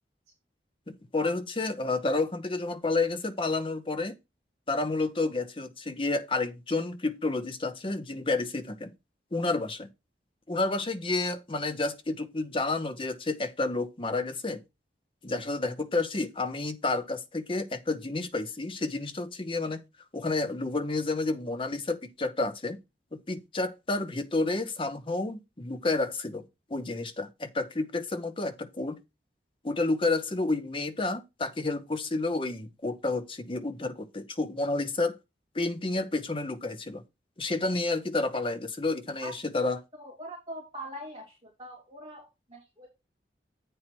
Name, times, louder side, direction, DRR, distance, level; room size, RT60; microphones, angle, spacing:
voice 1, 0.9-4.2 4.7-8.9 9.3-9.9 10.5-14.6 15.2-19.8 20.1-22.8 23.1-26.4 26.7-29.0 29.6-35.2 35.5-37.0 37.4-39.8, left 3 dB, 30° left, 0.8 m, -30 dB
voice 2, 40.0-42.9, right 1 dB, 30° right, 2.5 m, -43 dB
8.4 x 4.4 x 4.4 m
head